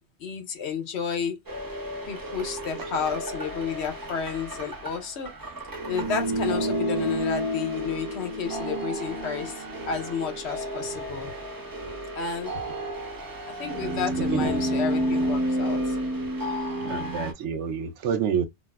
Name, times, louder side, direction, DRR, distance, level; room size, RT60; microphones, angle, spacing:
voice 1, 0.2-1.4 2.1-5.3 5.9-11.3 12.1-12.5 13.4-16.0, left 6 dB, 75° left, 1.0 m, -31 dB
sound 1, 1.5-17.3, right 1 dB, 20° right, 0.7 m, -30 dB
voice 2, 16.8-18.4, right 7 dB, 90° right, 0.9 m, -28 dB
4.1 x 2.1 x 2.2 m
omnidirectional pair, 1.2 m